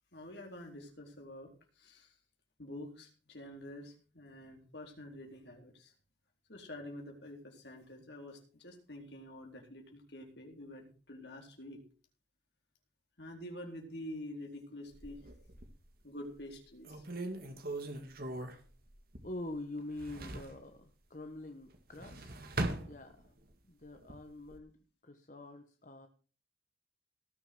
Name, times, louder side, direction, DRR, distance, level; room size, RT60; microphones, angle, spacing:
voice 1, 0.1-1.5 1.8-2.1 2.6-5.9 6.5-11.8 13.2-15.2 16.0-17.0, left 1 dB, 65° left, 2 dB, 4.1 m, -47 dB
sound 1, 14.9-15.9 16.4-16.5 16.8-19.5 19.8-20.6 21.7-23.5 23.9-24.6, right 2 dB, 55° right, 2.1 m, -40 dB
voice 2, 19.2-22.5 22.8-23.3 23.6-24.8 25.0-26.1, left 2 dB, 45° left, 6 dB, 1.3 m, -45 dB
18.5 x 7.0 x 6.0 m, 0.38 s
head